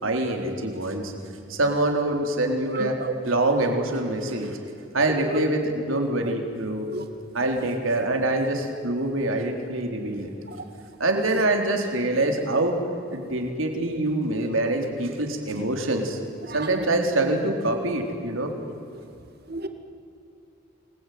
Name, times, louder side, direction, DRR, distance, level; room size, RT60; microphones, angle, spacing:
voice 1, 0.0-1.1 1.5-2.9 3.3-4.6 4.9-6.9 7.3-10.3 11.0-12.7 13.1-16.2 16.5-18.5, right 2 dB, 85° right, 3 dB, 3.9 m, -25 dB
voice 2, 2.7-3.1 5.3-5.5 6.9-7.0 16.5-16.6 19.5-19.7, right 2 dB, 50° right, 7 dB, 2.3 m, -31 dB
27.5 x 21.5 x 9.4 m, 2.6 s
head